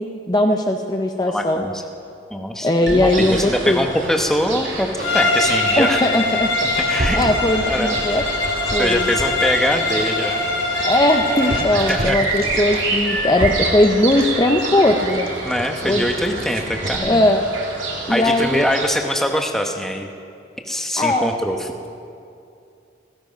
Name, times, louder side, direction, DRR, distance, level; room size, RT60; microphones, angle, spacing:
voice 1, 0.0-1.6 2.6-3.8 5.8-6.5 7.1-8.2 8.7-9.1 10.8-15.3 15.8-16.0 17.0-17.5 18.1-18.6 21.0-21.3, left 1 dB, 20° left, 3 dB, 0.7 m, -19 dB
voice 2, 1.2-1.8 2.3-6.0 6.9-7.2 7.6-8.3 8.7-10.4 11.7-12.2 15.4-17.3 18.1-20.1 20.6-21.9, equal, ahead, 3 dB, 1.0 m, -23 dB
sound 1, 2.9-18.8, right 3 dB, 70° right, 2.9 m, -28 dB
Dog, 3.2-17.0, right 1 dB, 50° right, 1.6 m, -32 dB
Bowed string instrument, 5.0-11.8, left 2 dB, 80° left, 3.5 m, -23 dB
16.5 x 15.5 x 5.3 m, 2.5 s
head